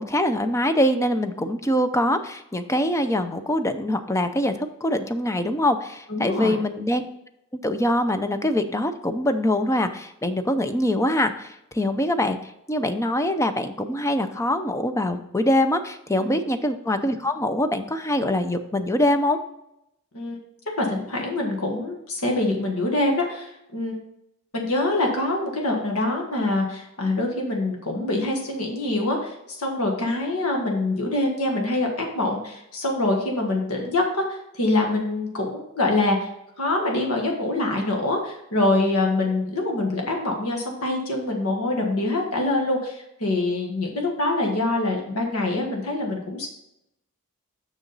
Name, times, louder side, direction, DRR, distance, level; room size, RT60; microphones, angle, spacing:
voice 1, 0.0-7.1 7.6-12.4 12.7-19.4, left 1 dB, 15° left, 8 dB, 0.5 m, -23 dB
voice 2, 6.1-6.6 16.1-16.3 20.1-20.4 20.8-24.0 24.5-36.3 36.6-46.5, left 2 dB, 80° left, 1 dB, 1.7 m, -25 dB
6.8 x 6.2 x 4.0 m, 0.82 s
head